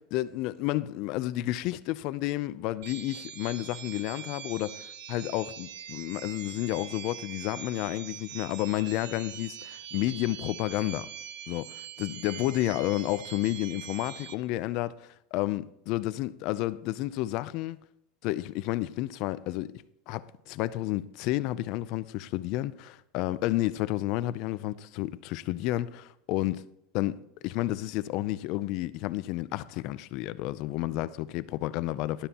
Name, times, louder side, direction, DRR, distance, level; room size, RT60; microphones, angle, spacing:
voice 1, 0.1-11.1 11.5-17.8 18.2-19.7 20.1-26.7 26.9-32.3, left 16 dB, 45° left, 0.5 m, -31 dB
sound 1, 2.8-14.3, right 9 dB, 65° right, 0.9 m, -43 dB
12.5 x 11.5 x 2.9 m
supercardioid pair, 170°, 0 cm